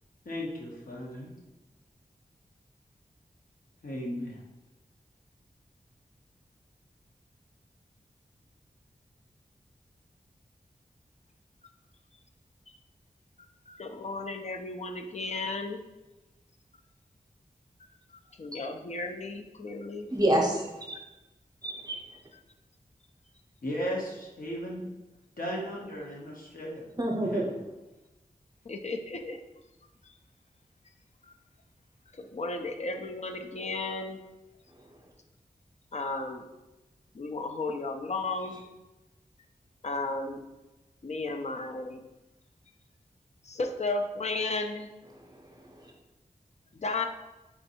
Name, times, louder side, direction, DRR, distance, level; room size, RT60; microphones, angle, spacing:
voice 1, 0.2-1.3 3.8-4.4 23.6-24.9 25.4-26.9 27.3-27.5, equal, 70° left, -3 dB, 1.1 m, -36 dB
voice 2, 13.7-15.8 18.4-20.1 28.6-29.4 31.3-31.4 32.1-34.2 35.9-36.5 37.1-38.6 39.8-40.4 41.0-42.1 43.4-44.9 46.7-47.1, left 3 dB, 50° left, 5 dB, 0.5 m, -34 dB
voice 3, 20.1-21.0 21.6-22.0 27.0-27.4 45.5-45.9, right 1 dB, 25° right, 0 dB, 0.7 m, -28 dB
4.3 x 2.6 x 4.2 m, 1.0 s
wide cardioid pair, 80°, 15 cm